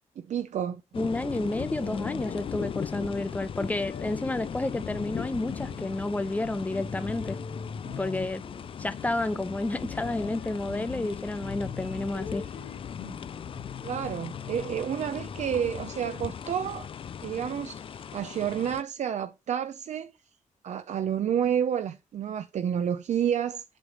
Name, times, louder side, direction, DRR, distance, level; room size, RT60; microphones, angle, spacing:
voice 1, 0.2-0.8 13.8-16.9 17.2-20.1 20.6-23.6, right 9 dB, 60° right, 0.6 m, -30 dB
sound 1, 0.9-18.8, left 8 dB, 40° left, 0.4 m, -38 dB
voice 2, 0.9-7.4 8.0-8.4 8.8-12.4, left 2 dB, 10° left, 0.7 m, -30 dB
sound 2, 1.8-3.3 3.8-16.0, left 5 dB, 65° left, 1.6 m, -43 dB
8.0 x 3.3 x 5.4 m
cardioid pair, 100°, 13 cm